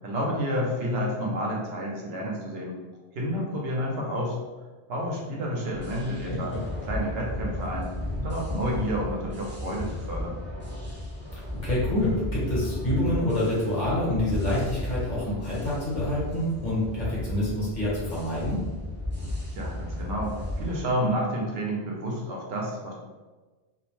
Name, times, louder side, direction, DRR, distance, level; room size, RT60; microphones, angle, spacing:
voice 1, 0.0-2.8 3.1-4.4 4.9-6.6 6.9-10.4 19.5-22.9, equal, 70° right, -2 dB, 0.8 m, -30 dB
sound 1, 5.7-20.8, left 1 dB, 15° right, 0.5 m, -34 dB
voice 2, 6.2-6.6 11.5-18.6, left 1 dB, 45° left, -7 dB, 1.0 m, -27 dB
2.4 x 2.0 x 3.0 m, 1.3 s
omnidirectional pair, 1.1 m